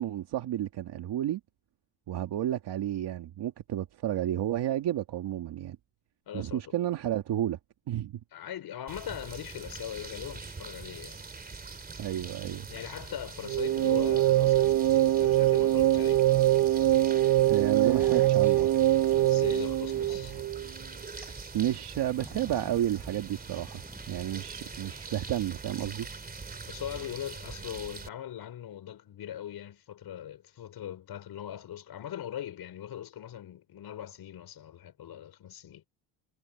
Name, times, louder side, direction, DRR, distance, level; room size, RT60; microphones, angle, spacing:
voice 1, 0.0-1.4 2.1-5.8 6.3-7.6 7.9-8.2 12.0-12.7 17.5-18.8 21.5-23.8 24.1-26.1, right 12 dB, 60° right, 2.1 m, -31 dB
voice 2, 6.3-6.8 8.3-11.2 12.7-16.2 19.2-20.3 26.7-35.9, left 10 dB, 55° left, 5.3 m, -40 dB
sound 1, 8.9-28.1, right 4 dB, 20° right, 2.9 m, -43 dB
sound 2, 13.5-20.7, right 13 dB, 40° right, 0.6 m, -23 dB
sound 3, 17.8-25.3, right 1 dB, 5° right, 4.3 m, -52 dB
cardioid pair, 145°, 46 cm